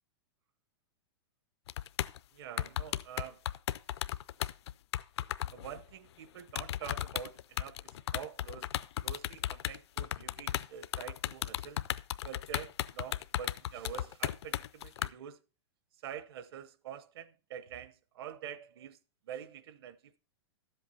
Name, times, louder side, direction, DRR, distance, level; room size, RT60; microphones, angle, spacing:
sound 1, 1.7-2.2 2.6-5.8 6.5-15.1, left 12 dB, 75° left, 0.5 m, -35 dB
voice 1, 2.3-3.4 5.5-8.7 9.0-11.8 12.2-15.4 16.0-19.0 19.2-20.2, right 9 dB, 60° right, 0.9 m, -46 dB
11.5 x 8.0 x 4.1 m
supercardioid pair, 170°, 14 cm